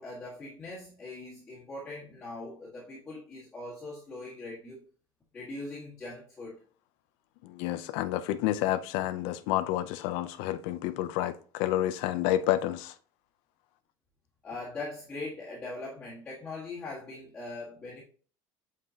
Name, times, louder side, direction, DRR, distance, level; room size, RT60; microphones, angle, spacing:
voice 1, 0.0-4.8 5.3-6.6 14.4-18.0, left 2 dB, 10° left, 1.6 m, -41 dB
voice 2, 7.4-12.9, left 13 dB, 70° left, 0.6 m, -29 dB
7.6 x 4.8 x 2.8 m
cardioid pair, 175°, 9 cm